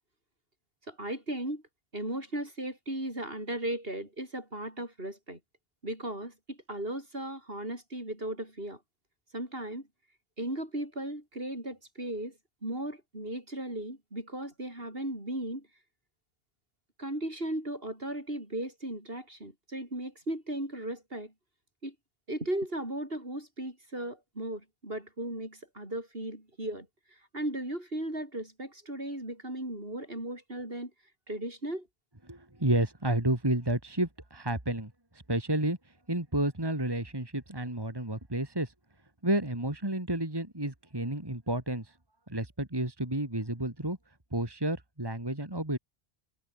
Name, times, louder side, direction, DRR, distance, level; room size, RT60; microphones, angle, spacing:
voice 1, 0.9-1.6 1.9-5.4 5.8-8.8 9.3-9.9 10.4-12.3 12.6-15.7 17.0-21.3 21.8-21.9 22.3-26.9 27.3-30.9 31.3-31.9, right 1 dB, 60° right, 8.2 m, -36 dB
voice 2, 32.3-35.8 36.1-38.7 39.2-41.9 42.3-44.0 44.3-45.8, right 1 dB, 20° right, 3.0 m, -31 dB
omnidirectional pair, 1.1 m